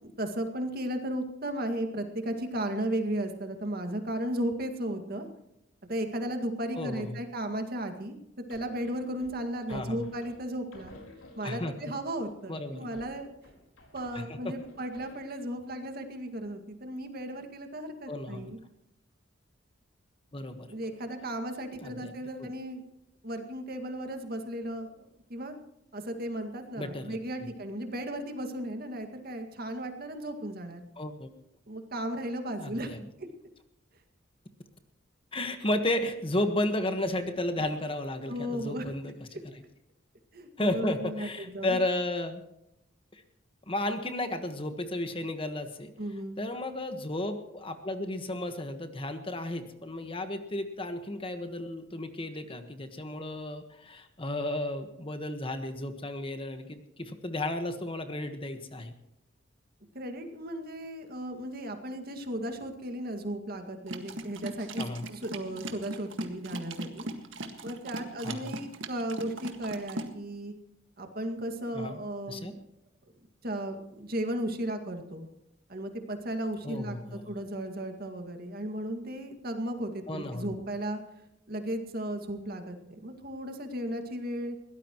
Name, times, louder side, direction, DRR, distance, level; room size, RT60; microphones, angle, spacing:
voice 1, 0.0-5.3 5.9-8.2 8.5-10.9 11.4-13.3 13.9-18.6 20.7-22.8 23.2-25.5 25.9-30.8 31.7-33.3 38.3-38.9 39.3-39.4 40.3-41.8 46.0-46.4 59.9-67.1 67.6-70.5 71.0-72.6 73.4-75.3 75.7-81.0 81.5-84.6, right 1 dB, 50° right, 6 dB, 2.1 m, -35 dB
voice 2, 6.8-7.2 9.7-10.0 11.4-11.7 12.5-12.9 14.1-14.5 18.1-18.5 20.3-20.7 21.8-22.1 22.4-22.5 26.8-27.5 31.0-31.3 32.6-33.0 35.3-39.4 40.6-42.4 43.1-43.2 43.7-45.9 46.4-58.9 64.8-65.0 68.2-68.6 71.7-72.0 72.3-72.5 76.6-77.3 80.1-80.5, left 1 dB, 25° left, 7 dB, 1.4 m, -33 dB
sound 1, 8.5-11.8 12.2-15.5, left 1 dB, 85° left, 4.6 m, -53 dB
sound 2, 63.9-70.1, right 1 dB, 70° right, 1.8 m, -39 dB
22.0 x 17.0 x 3.1 m, 0.84 s
head